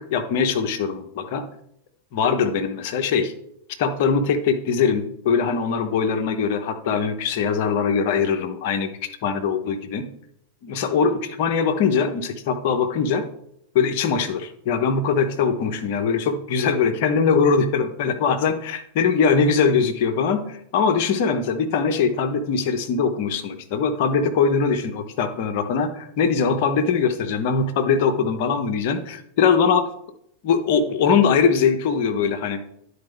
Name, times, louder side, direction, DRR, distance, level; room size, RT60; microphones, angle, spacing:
voice 1, 0.0-1.4 2.1-3.3 3.8-8.9 9.2-10.1 10.6-13.2 13.7-29.8 30.4-32.6, left 5 dB, 50° left, 9 dB, 0.8 m, -21 dB
11.5 x 4.3 x 3.4 m, 0.74 s
figure-of-eight pair, 90°, 0 cm